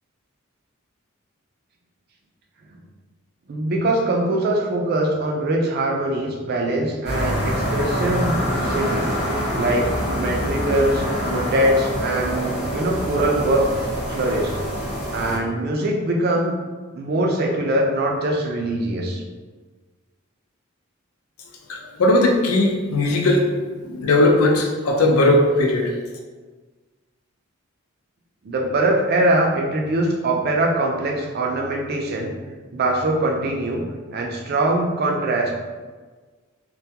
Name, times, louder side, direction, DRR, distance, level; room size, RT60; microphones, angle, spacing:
voice 1, 3.5-9.1 9.5-14.6 15.1-16.5 16.9-19.2 28.4-32.3 32.7-33.8 34.1-35.5, right 1 dB, 45° right, 0 dB, 0.3 m, -22 dB
sound 1, 7.0-15.4, equal, 30° left, 0.6 m, -25 dB
voice 2, 21.7-26.0, left 1 dB, 85° left, 1 dB, 0.4 m, -18 dB
2.2 x 2.2 x 2.7 m, 1.4 s
head